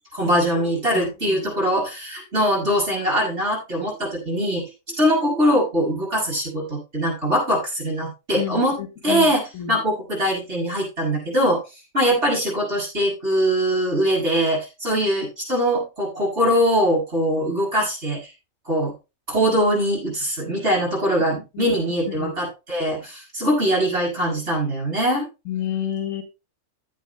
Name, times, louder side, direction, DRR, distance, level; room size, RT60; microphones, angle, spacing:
voice 1, 0.1-4.7 5.0-8.8 9.0-11.6 11.9-18.3 18.7-18.9 19.3-25.3, equal, 55° right, -3 dB, 7.2 m, -22 dB
voice 2, 0.9-1.4 8.3-9.8 21.5-21.8 22.2-22.3 25.5-26.2, left 9 dB, 70° left, 5 dB, 2.1 m, -30 dB
16.0 x 9.5 x 2.3 m, 0.28 s
omnidirectional pair, 1.4 m